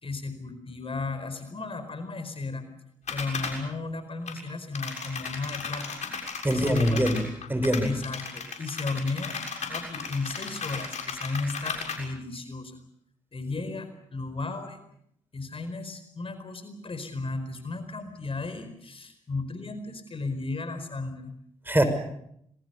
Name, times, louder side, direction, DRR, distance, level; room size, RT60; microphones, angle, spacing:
voice 1, 0.0-2.6 3.1-6.0 6.5-7.2 7.8-9.4 9.7-12.8 13.3-14.8 15.3-21.3, left 3 dB, 45° left, 10 dB, 4.7 m, -34 dB
sound 1, 3.1-3.6 4.2-4.3 4.7-11.9, left 5 dB, 65° left, 6.8 m, -35 dB
voice 2, 6.4-7.9 21.7-21.8, right 1 dB, 15° right, 9 dB, 5.7 m, -24 dB
26.5 x 22.5 x 6.9 m, 0.74 s
hypercardioid pair, 40°, 13 cm